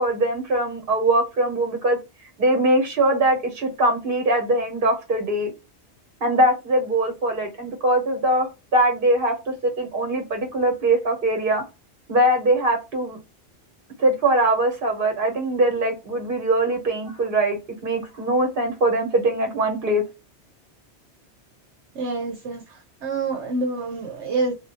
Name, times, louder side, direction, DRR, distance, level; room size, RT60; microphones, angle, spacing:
voice 1, 0.0-2.0 2.4-5.5 6.2-8.5 8.7-11.6 12.1-13.2 14.0-20.0, right 1 dB, 50° right, 1.3 m, -22 dB
voice 2, 21.9-24.5, right 3 dB, 75° right, 1.0 m, -27 dB
3.3 x 2.6 x 2.8 m
omnidirectional pair, 1.2 m